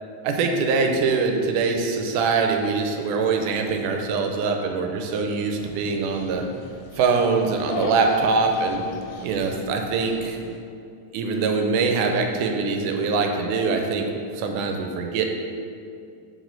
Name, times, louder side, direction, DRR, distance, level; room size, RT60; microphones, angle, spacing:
voice 1, 0.2-6.5 7.0-8.9 9.2-10.4 11.1-15.3, right 4 dB, 90° right, 4 dB, 2.1 m, -23 dB
Dog, 5.6-10.6, left 3 dB, 85° left, 2.1 m, -37 dB
6.2 x 4.8 x 3.9 m, 2.4 s
omnidirectional pair, 3.6 m